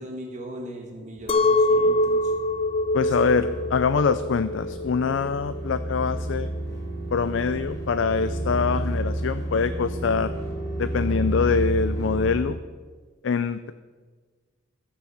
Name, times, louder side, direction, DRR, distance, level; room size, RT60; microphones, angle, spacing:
voice 1, 0.0-2.3 3.0-3.3, right 1 dB, 40° right, 1 dB, 1.6 m, -38 dB
sound 1, 1.2-12.4, right 1 dB, 55° left, 4.6 m, -31 dB
Chink clink, 1.3-6.5, left 1 dB, 30° left, 0.5 m, -24 dB
voice 2, 2.9-6.5 7.1-10.3 10.8-12.6 13.2-13.7, left 5 dB, 85° left, 12 dB, 0.4 m, -24 dB
14.0 x 7.0 x 7.1 m, 1.5 s
head